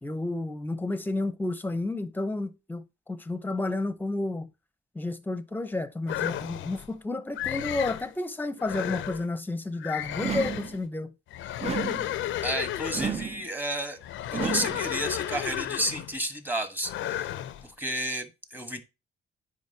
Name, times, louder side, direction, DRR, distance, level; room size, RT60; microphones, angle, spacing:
voice 1, 0.0-4.5 4.9-11.1, left 2 dB, 10° left, 0.8 m, -31 dB
sound 1, 6.1-6.9 7.4-8.1 8.6-9.3 9.8-10.8 11.3-13.3 14.0-16.2 16.8-17.6, left 12 dB, 75° left, 0.6 m, -33 dB
sound 2, 10.2-10.8 11.6-12.2 12.9-13.5 14.3-14.9, right 7 dB, 35° right, 0.6 m, -32 dB
voice 2, 12.4-14.0 14.3-17.3 17.6-18.8, right 1 dB, 10° right, 1.3 m, -32 dB
9.4 x 5.0 x 2.8 m
cardioid pair, 90°, 20 cm